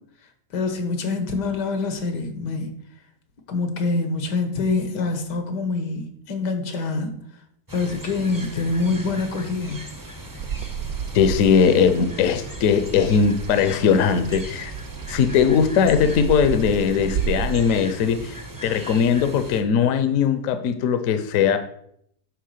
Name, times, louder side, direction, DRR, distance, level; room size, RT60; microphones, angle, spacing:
voice 1, 0.5-2.7 3.5-7.1 7.7-9.9, left 3 dB, 85° left, 7 dB, 1.8 m, -25 dB
sound 1, 7.7-19.6, right 1 dB, 20° right, 0.6 m, -39 dB
Bird vocalization bird call bird song, 10.4-17.7, right 8 dB, 70° right, 0.9 m, -32 dB
voice 2, 11.1-14.7 15.1-21.6, left 7 dB, 60° left, 9 dB, 1.0 m, -19 dB
9.3 x 3.5 x 6.6 m, 0.70 s
omnidirectional pair, 1.8 m